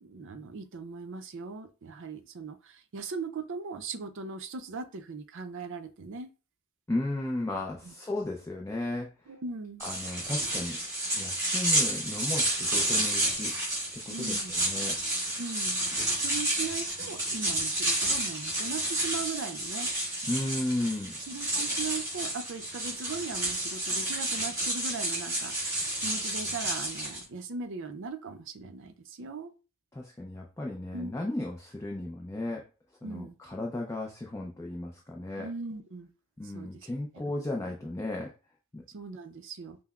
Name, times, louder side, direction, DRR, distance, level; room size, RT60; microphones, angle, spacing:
voice 1, 0.0-6.3 9.3-9.9 14.1-14.5 15.4-15.8 16.1-19.9 21.3-25.5 26.0-29.5 30.9-31.1 33.0-33.3 35.4-36.1 36.5-36.7 38.9-39.8, right 4 dB, 55° right, 8 dB, 0.5 m, -39 dB
voice 2, 6.9-9.4 9.8-10.8 11.1-13.5 13.9-15.0 20.2-21.2 29.9-32.6 33.0-35.5 36.4-38.3 38.7-38.8, left 1 dB, 15° left, 0 dB, 0.4 m, -35 dB
sound 1, 9.8-27.2, right 1 dB, 15° right, 2.0 m, -30 dB
5.6 x 2.0 x 2.3 m, 0.33 s
head